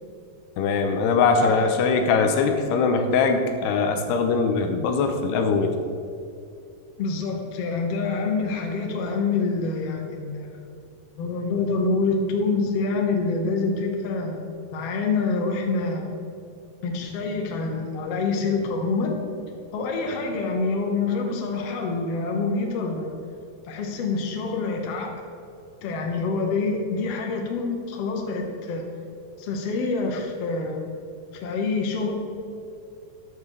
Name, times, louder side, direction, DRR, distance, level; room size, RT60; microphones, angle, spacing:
voice 1, 0.6-5.8, left 4 dB, 85° left, 5 dB, 2.9 m, -21 dB
voice 2, 1.4-1.7 7.0-10.6 11.2-16.1 16.8-19.2 19.7-23.1 23.7-25.2 25.8-28.8 29.4-30.9 31.3-32.1, left 4 dB, 60° left, 1 dB, 1.7 m, -26 dB
14.0 x 11.0 x 3.3 m, 2.5 s
omnidirectional pair, 4.7 m